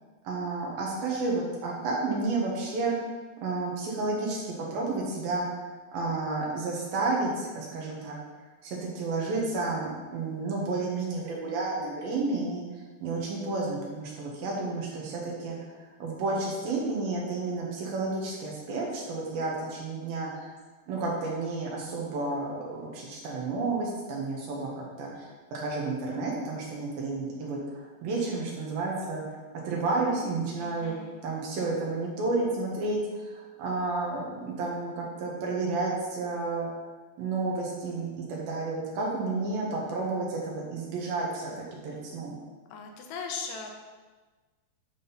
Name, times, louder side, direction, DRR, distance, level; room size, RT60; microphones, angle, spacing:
voice 1, 0.2-3.0 3.4-5.5 5.9-8.2 8.6-12.6 13.0-20.5 20.9-29.2 29.6-31.0 31.2-36.7 37.2-42.4, right 3 dB, 65° right, -2 dB, 2.9 m, -31 dB
voice 2, 30.6-31.2 42.7-43.7, left 5 dB, 85° left, 3 dB, 3.0 m, -38 dB
10.5 x 3.8 x 5.5 m, 1.3 s
omnidirectional pair, 4.8 m